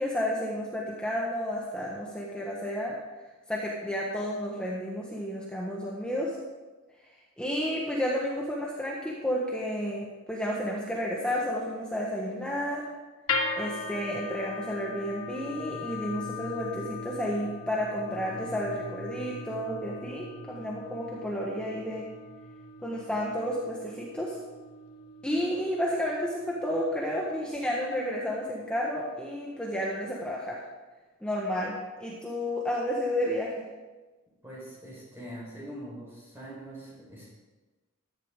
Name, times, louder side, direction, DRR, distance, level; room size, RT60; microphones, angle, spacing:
voice 1, 0.0-2.9 3.5-6.4 7.4-12.8 13.6-22.0 22.8-24.4 25.2-30.6 31.2-33.7, equal, 5° left, -4 dB, 1.4 m, -31 dB
sound 1, 13.3-29.5, left 4 dB, 75° left, 1.5 m, -39 dB
voice 2, 34.4-37.3, right 1 dB, 10° right, -6 dB, 4.4 m, -43 dB
14.5 x 10.5 x 3.7 m, 1.2 s
head